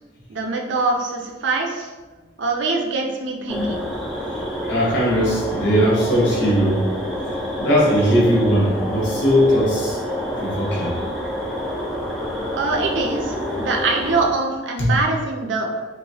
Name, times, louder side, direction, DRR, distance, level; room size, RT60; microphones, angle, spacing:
voice 1, 0.3-1.9 2.4-3.8 12.5-15.9, right 3 dB, 70° right, 1 dB, 0.4 m, -23 dB
sound 1, 3.5-14.3, left 1 dB, ahead, 0.4 m, -27 dB
voice 2, 4.7-6.8 7.6-10.0 10.4-11.0 14.8-14.9, equal, 70° left, -5 dB, 0.9 m, -19 dB
2.9 x 2.1 x 2.7 m, 1.2 s
head